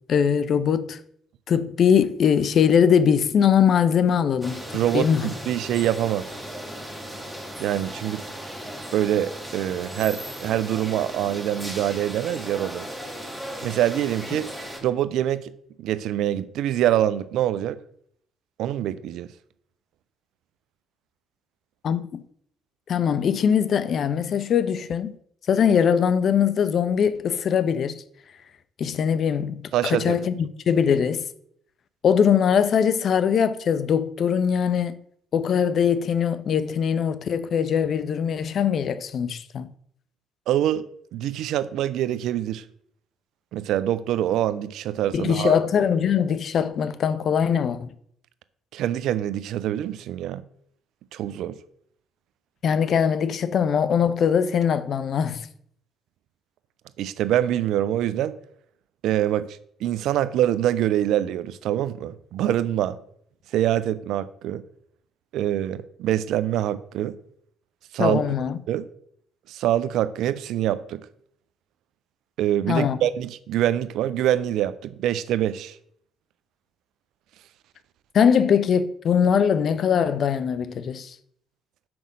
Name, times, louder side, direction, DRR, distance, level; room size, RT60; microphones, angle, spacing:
voice 1, 0.1-1.0 1.5-4.6 4.9-5.3 21.8-22.2 22.9-25.2 25.5-28.0 28.8-31.2 32.0-35.0 35.3-39.7 45.1-47.9 52.6-55.4 68.0-68.6 72.7-73.0 78.1-81.1, left 7 dB, 60° left, 0.6 m, -21 dB
sound 1, 4.4-14.8, equal, 5° right, 2.9 m, -37 dB
voice 2, 4.7-6.3 7.6-8.2 8.9-12.9 13.6-14.5 14.8-15.5 15.8-17.8 18.6-19.3 29.7-30.3 40.5-40.8 41.1-42.6 43.5-45.6 48.7-50.4 51.1-51.6 57.0-58.4 59.0-63.0 63.5-64.6 65.3-67.2 67.9-68.3 68.7-68.9 69.5-71.0 72.4-75.8, right 12 dB, 70° right, 0.4 m, -25 dB
6.1 x 5.2 x 6.2 m
hypercardioid pair, 50°, 0 cm